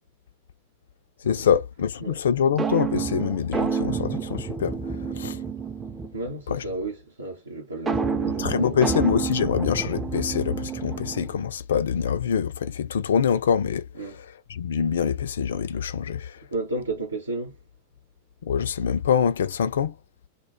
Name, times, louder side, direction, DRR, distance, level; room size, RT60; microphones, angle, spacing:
voice 1, 1.3-4.7 5.2-5.4 6.5-6.6 8.4-16.4 18.4-19.9, left 7 dB, 65° left, 0.3 m, -25 dB
sound 1, 2.6-6.3 7.9-11.5, right 5 dB, 15° right, 0.5 m, -29 dB
voice 2, 6.1-9.0 13.9-14.2 16.5-17.5, right 2 dB, 80° right, 0.8 m, -32 dB
2.2 x 2.1 x 3.0 m
figure-of-eight pair, 90°, 0 cm